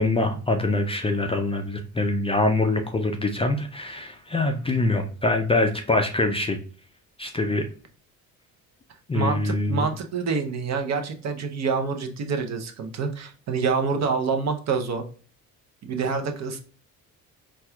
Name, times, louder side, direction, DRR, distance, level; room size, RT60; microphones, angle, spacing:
voice 1, 0.0-6.6 7.2-7.6 9.1-9.9, left 2 dB, 15° left, 3 dB, 0.4 m, -24 dB
voice 2, 9.1-15.0 15.8-16.6, right 5 dB, 50° right, 5 dB, 0.7 m, -27 dB
4.1 x 2.3 x 2.3 m, 0.40 s
supercardioid pair, 80°, 36 cm